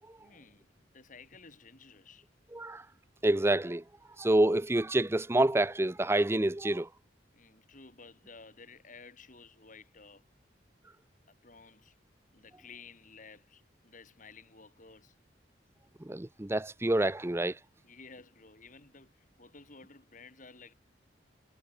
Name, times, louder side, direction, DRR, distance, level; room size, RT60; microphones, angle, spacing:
voice 1, 0.2-2.3 7.3-10.2 11.3-12.0 12.3-15.2 17.8-20.7, left 4 dB, 45° left, 3.4 m, -54 dB
voice 2, 2.5-2.8 3.2-3.8 4.2-6.9 16.0-17.6, right 1 dB, 15° right, 0.6 m, -27 dB
head